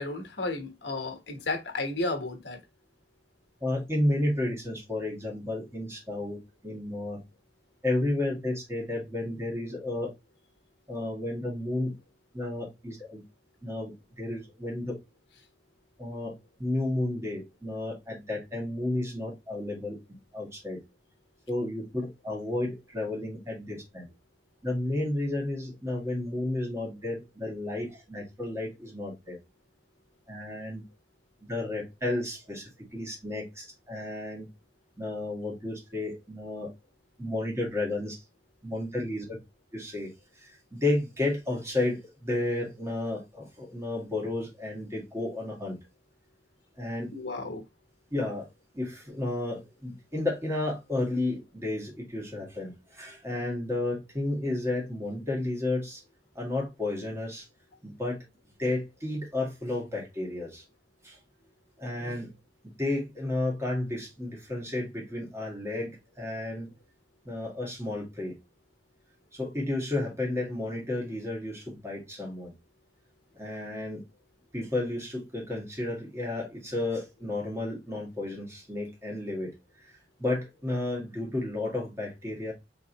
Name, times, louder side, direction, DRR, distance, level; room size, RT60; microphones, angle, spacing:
voice 1, 0.0-2.6 47.1-47.6, left 2 dB, 75° left, 1.2 m, -33 dB
voice 2, 3.6-6.4 6.6-7.2 7.8-10.1 10.9-11.9 12.3-13.2 13.6-14.9 16.0-20.0 20.3-20.8 21.5-24.1 24.6-29.4 30.3-30.8 31.4-34.5 35.0-36.7 37.2-38.2 38.6-39.4 39.7-40.1 40.4-45.8 46.8-47.1 48.1-48.5 48.7-56.0 56.4-57.4 57.8-58.2 58.6-60.6 61.0-61.2 61.8-62.3 62.6-66.7 67.3-68.3 69.3-72.5 73.3-74.0 74.5-79.5 79.8-79.9 80.2-82.5, left 2 dB, 15° right, 1.8 m, -32 dB
3.9 x 3.7 x 2.9 m
head